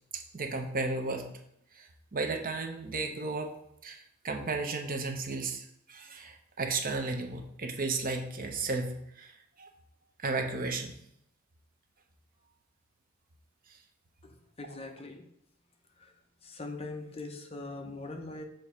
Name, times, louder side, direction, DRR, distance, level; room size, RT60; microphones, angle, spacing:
voice 1, 0.1-1.3 1.7-3.5 3.8-9.3 9.6-9.7 10.2-10.9, right 3 dB, 45° right, 5 dB, 0.8 m, -34 dB
voice 2, 14.2-15.2 16.0-16.1 16.4-18.4, left 2 dB, 30° left, 4 dB, 0.7 m, -42 dB
6.5 x 3.1 x 5.6 m, 0.74 s
head